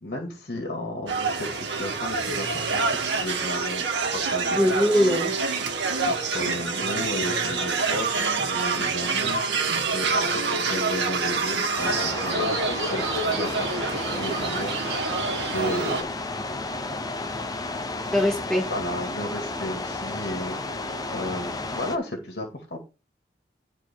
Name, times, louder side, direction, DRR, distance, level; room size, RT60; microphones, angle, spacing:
voice 1, 0.0-3.8 4.1-5.2 6.1-15.2 15.5-16.1 18.7-20.6 21.1-22.8, left 1 dB, 60° left, 2.2 m, -34 dB
sound 1, 1.1-16.0, right 4 dB, 75° right, 1.8 m, -27 dB
voice 2, 4.6-5.3 18.1-18.7, equal, 5° left, 2.5 m, -21 dB
sound 2, 11.8-22.0, left 2 dB, 20° left, 0.8 m, -32 dB
11.0 x 4.3 x 4.6 m
head